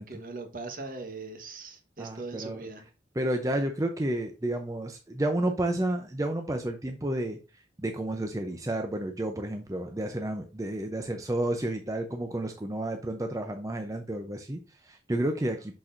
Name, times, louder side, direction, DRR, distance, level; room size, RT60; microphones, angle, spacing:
voice 1, 0.0-2.9, right 3 dB, 50° right, 1.2 m, -40 dB
voice 2, 2.0-2.6 3.1-15.8, right 1 dB, 20° right, 0.5 m, -31 dB
6.2 x 6.0 x 2.5 m
head